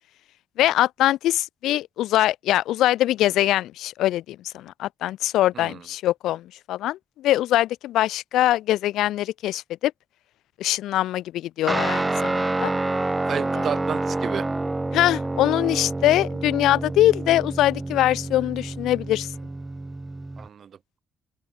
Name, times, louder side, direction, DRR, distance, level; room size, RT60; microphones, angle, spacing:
voice 1, 0.6-9.9 10.6-12.7 14.9-19.3, left 14 dB, 85° left, 1.0 m, -23 dB
Guitar, 11.7-20.5, right 2 dB, 15° right, 2.2 m, -28 dB
voice 2, 13.3-14.5 20.4-21.0, right 8 dB, 55° right, 4.8 m, -32 dB
open air
cardioid pair, 90°, 0 cm